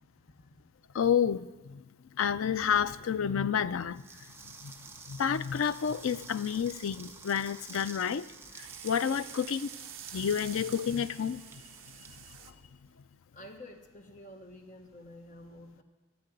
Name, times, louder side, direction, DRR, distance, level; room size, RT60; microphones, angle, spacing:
voice 1, 0.9-1.8 2.2-4.0 4.6-4.7 5.1-8.3 8.8-9.7 10.1-11.4, left 8 dB, 75° left, 0.4 m, -29 dB
sound 1, 3.9-12.9, right 4 dB, 10° right, 0.7 m, -50 dB
sound 2, 8.6-12.5, right 11 dB, 70° right, 0.7 m, -48 dB
voice 2, 13.3-15.8, left 1 dB, 40° left, 1.2 m, -49 dB
13.0 x 6.7 x 9.2 m
head